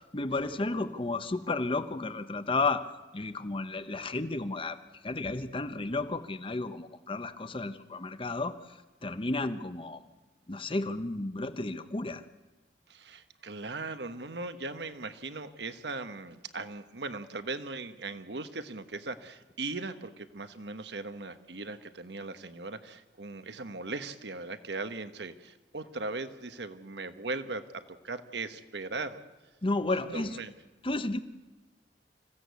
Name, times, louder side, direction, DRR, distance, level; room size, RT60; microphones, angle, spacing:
voice 1, 0.0-2.9 3.1-4.8 5.0-8.5 9.0-10.0 10.5-12.2 29.6-30.4 30.8-31.2, left 2 dB, 30° left, 11 dB, 1.0 m, -32 dB
voice 2, 12.9-29.2 30.1-30.5, right 3 dB, 70° right, 10 dB, 1.3 m, -39 dB
26.0 x 16.0 x 8.3 m, 1.2 s
head